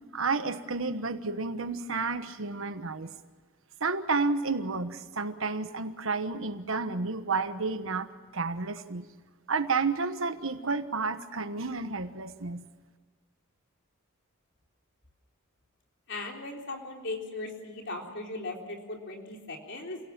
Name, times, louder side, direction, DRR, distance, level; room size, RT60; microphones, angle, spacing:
voice 1, 0.1-3.1 3.8-8.1 8.3-9.1 9.5-12.6, right 4 dB, 70° right, 10 dB, 1.2 m, -31 dB
voice 2, 16.1-20.0, left 2 dB, 55° left, 1 dB, 3.9 m, -38 dB
28.0 x 17.5 x 7.3 m, 1.4 s
head